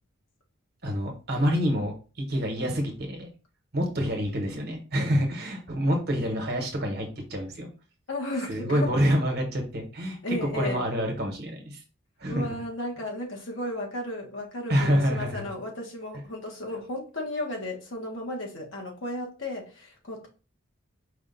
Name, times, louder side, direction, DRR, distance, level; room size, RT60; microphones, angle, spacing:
voice 1, 0.8-3.3 3.7-7.7 8.5-11.8 12.2-12.6 14.7-15.5, equal, 50° right, 1.1 m, -27 dB
voice 2, 8.1-8.9 10.2-10.8 12.3-20.3, left 1 dB, 65° left, 1.3 m, -34 dB
4.9 x 2.4 x 3.9 m
head